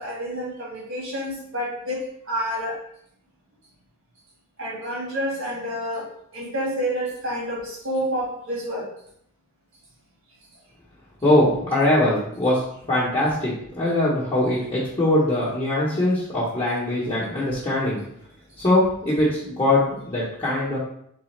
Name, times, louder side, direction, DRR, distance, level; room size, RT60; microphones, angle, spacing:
voice 1, 0.0-2.0 2.3-2.8 4.6-6.1 6.3-8.9, equal, 65° right, -4 dB, 1.7 m, -28 dB
voice 2, 11.2-18.0 18.6-20.8, left 1 dB, 25° left, -9 dB, 0.9 m, -22 dB
4.1 x 3.3 x 3.2 m, 0.70 s
head